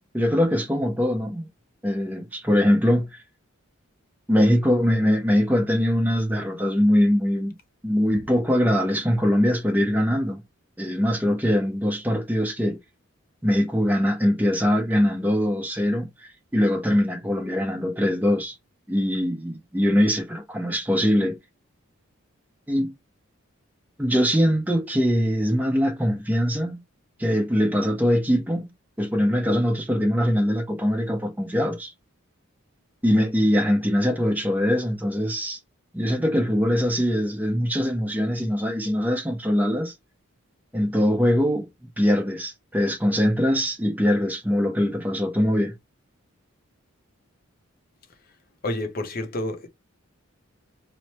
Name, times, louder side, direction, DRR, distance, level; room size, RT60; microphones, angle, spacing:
voice 1, 0.1-1.5 1.8-3.2 4.3-7.5 7.8-10.4 10.8-12.8 13.4-18.6 18.9-21.4 22.7-22.9 24.0-26.8 27.2-28.6 29.0-31.9 33.0-35.6 35.9-39.9 40.7-41.7 42.0-45.7, equal, 10° right, 0.6 m, -22 dB
voice 2, 48.6-49.7, left 1 dB, 45° left, 0.6 m, -29 dB
3.1 x 2.0 x 4.1 m
head